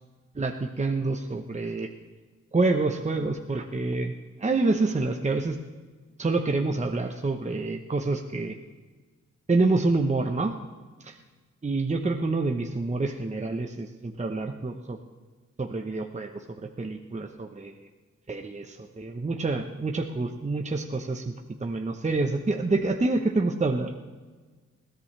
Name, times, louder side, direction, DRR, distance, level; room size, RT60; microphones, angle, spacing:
voice 1, 0.4-1.9 2.5-4.1 4.4-5.6 6.2-8.6 9.5-10.5 11.0-11.1 11.6-15.0 15.6-16.4 16.8-17.8 18.3-21.2 21.6-23.9, right 3 dB, 25° right, 4 dB, 0.9 m, -27 dB
20.5 x 16.5 x 3.3 m, 1.4 s
wide cardioid pair, 135°, 30 cm